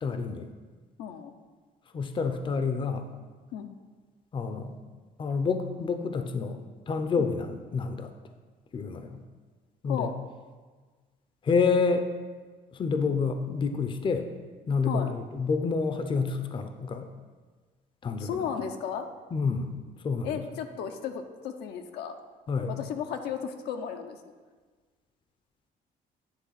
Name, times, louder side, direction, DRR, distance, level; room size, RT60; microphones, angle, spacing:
voice 1, 0.0-0.5 1.9-3.1 4.3-4.7 5.2-6.6 6.9-8.1 8.7-9.2 9.8-10.1 11.4-12.0 12.7-14.3 14.7-17.1 18.0-18.3 19.3-19.7 20.0-20.3 22.5-22.7, left 5 dB, 30° left, 7 dB, 0.6 m, -28 dB
voice 2, 1.0-1.3 3.5-3.8 7.2-7.4 9.8-10.1 14.9-15.1 18.2-19.1 20.2-22.2 22.7-24.3, left 8 dB, 80° left, 6 dB, 0.7 m, -34 dB
9.9 x 3.4 x 5.6 m, 1.4 s
cardioid pair, 110°, 17 cm